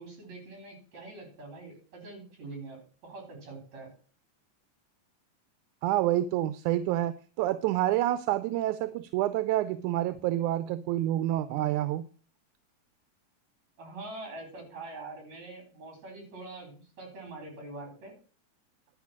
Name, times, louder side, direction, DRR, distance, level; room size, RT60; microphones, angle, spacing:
voice 1, 0.0-3.9 13.8-18.1, right 2 dB, 65° right, 2 dB, 5.3 m, -44 dB
voice 2, 5.8-12.0, right 14 dB, 85° right, 13 dB, 2.1 m, -28 dB
11.5 x 5.1 x 7.3 m, 0.40 s
omnidirectional pair, 3.4 m